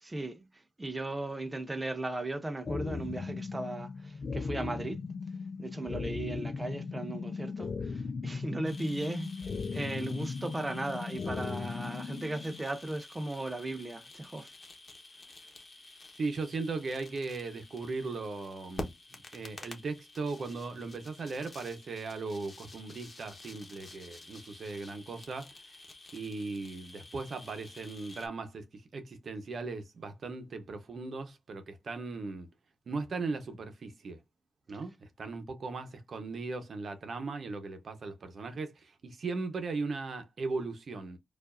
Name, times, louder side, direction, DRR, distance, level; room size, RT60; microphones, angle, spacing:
voice 1, 0.0-5.0 5.6-14.5, right 2 dB, 25° right, 0.6 m, -37 dB
sound 1, 2.7-12.6, left 4 dB, 60° left, 0.4 m, -37 dB
sound 2, 8.6-28.3, left 2 dB, 40° left, 1.1 m, -50 dB
voice 2, 16.2-18.9 19.3-25.7 26.1-32.5 32.9-34.2 34.7-41.2, right 3 dB, 65° right, 0.9 m, -38 dB
4.5 x 2.6 x 2.5 m
cardioid pair, 70°, 0 cm